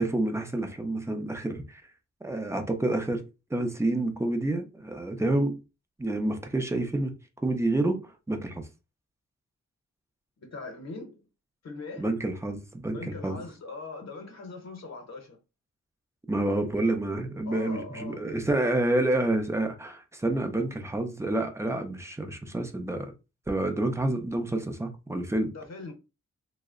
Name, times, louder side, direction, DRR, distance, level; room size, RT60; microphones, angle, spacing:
voice 1, 0.0-1.8 2.2-3.2 3.5-5.6 6.0-7.2 7.4-8.7 12.0-13.4 16.3-23.1 23.5-25.5, right 2 dB, 10° right, 0.4 m, -28 dB
voice 2, 10.4-11.2 11.6-12.0 12.9-15.4 17.5-18.3 25.5-25.9, left 3 dB, 65° left, 0.8 m, -41 dB
3.2 x 2.0 x 3.6 m
wide cardioid pair, 160°, 29 cm